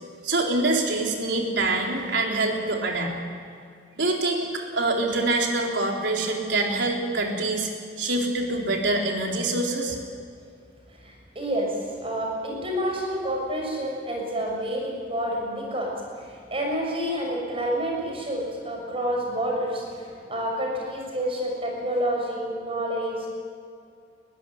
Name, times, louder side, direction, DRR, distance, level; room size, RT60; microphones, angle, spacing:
voice 1, 0.2-3.1 4.0-7.7 8.0-10.0, right 2 dB, 85° right, 0 dB, 3.9 m, -25 dB
voice 2, 10.9-23.3, equal, 35° right, 0 dB, 6.6 m, -29 dB
22.0 x 16.0 x 10.0 m, 2.3 s
head